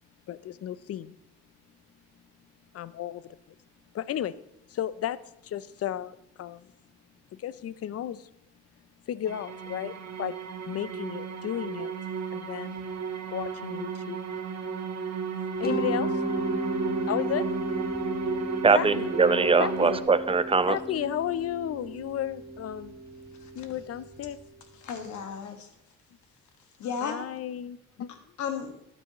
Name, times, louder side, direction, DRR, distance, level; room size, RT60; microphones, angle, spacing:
voice 1, 0.3-1.2 2.7-3.4 3.9-4.3 4.7-5.2 5.4-6.7 7.4-8.3 9.1-10.4 10.7-11.9 12.3-12.8 13.3-14.2 15.6-16.1 17.1-17.5 18.7-19.1 19.6-20.0 20.7-22.9 23.5-24.4 27.0-28.2, left 11 dB, 55° left, 17 dB, 0.6 m, -33 dB
sound 1, 9.3-20.0, right 5 dB, 55° right, 1.4 m, -34 dB
Mallet percussion, 15.6-24.4, right 2 dB, 30° left, 1.6 m, -34 dB
voice 2, 18.6-20.8, right 4 dB, 20° right, 13 dB, 0.6 m, -22 dB
voice 3, 23.3-23.7 24.7-25.7 26.8-27.2 28.4-28.8, left 6 dB, 75° left, 5 dB, 1.7 m, -34 dB
12.5 x 8.9 x 3.0 m, 0.78 s
cardioid pair, 90°, 30 cm